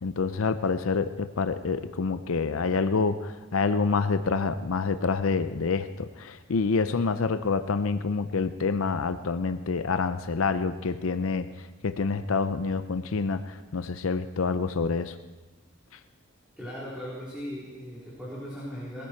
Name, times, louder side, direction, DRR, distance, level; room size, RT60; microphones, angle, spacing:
voice 1, 0.0-15.2 15.9-16.0, left 4 dB, 85° left, 11 dB, 0.6 m, -27 dB
voice 2, 16.6-19.1, equal, 5° right, -9 dB, 3.8 m, -38 dB
20.5 x 15.0 x 4.6 m, 1.2 s
head